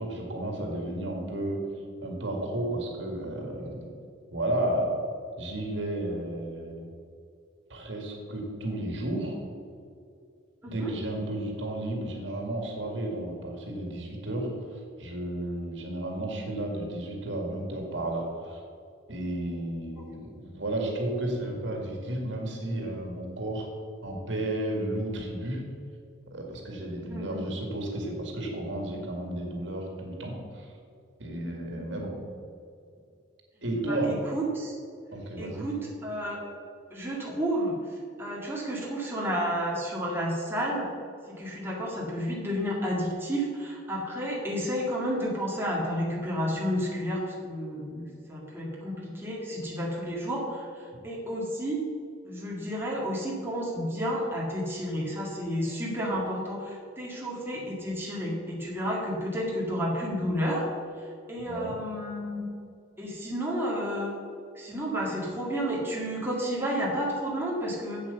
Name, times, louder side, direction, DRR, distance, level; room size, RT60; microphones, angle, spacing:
voice 1, 0.0-3.9 4.3-4.9 5.4-6.9 7.7-9.4 10.7-18.6 19.1-23.7 24.0-25.7 26.3-30.7 31.2-32.2 33.6-34.2 35.1-35.7 61.4-61.8, right 1 dB, 70° right, 1 dB, 2.0 m, -33 dB
voice 2, 10.6-10.9 27.1-27.5 33.9-34.8 35.4-36.4 36.9-40.9 41.3-51.8 52.2-60.7 61.0-62.5 63.0-64.1 64.5-68.0, equal, 10° right, -4 dB, 2.1 m, -31 dB
8.1 x 7.8 x 6.9 m, 2.4 s
head